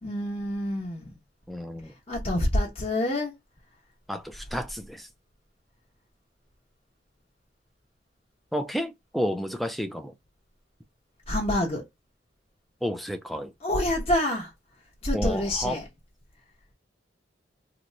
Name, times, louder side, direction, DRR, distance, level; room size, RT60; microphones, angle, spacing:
voice 1, 0.0-1.1 2.1-3.3 11.3-11.9 13.6-14.5 15.0-15.9, left 1 dB, 35° left, 1.0 m, -27 dB
voice 2, 1.5-1.9 4.1-5.1 8.5-10.1 12.8-13.5 15.1-15.8, equal, ahead, 0.3 m, -31 dB
3.0 x 2.1 x 3.8 m
head